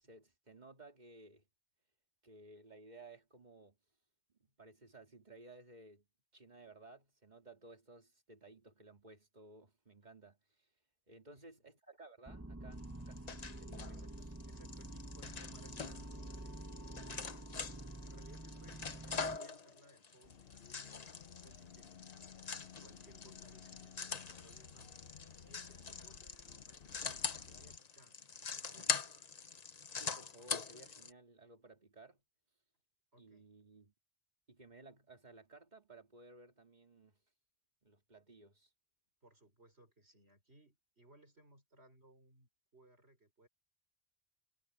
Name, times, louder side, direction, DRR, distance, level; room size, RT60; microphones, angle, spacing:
voice 1, 0.0-1.4 2.2-3.8 4.3-6.1 6.3-10.7 11.1-13.3 13.6-13.9 30.0-32.2 33.2-33.9 34.5-37.2 37.8-38.7, right 2 dB, 45° right, 2.5 m, -58 dB
sound 1, 12.3-19.4, right 1 dB, 15° right, 1.1 m, -48 dB
sound 2, 12.8-31.1, left 5 dB, 40° left, 1.0 m, -44 dB
voice 2, 13.9-17.0 18.0-21.9 22.8-24.9 25.4-29.0 33.1-33.5 39.2-43.5, right 1 dB, 85° right, 6.4 m, -64 dB
sound 3, 20.2-27.8, left 7 dB, 65° left, 1.3 m, -56 dB
omnidirectional pair, 1.1 m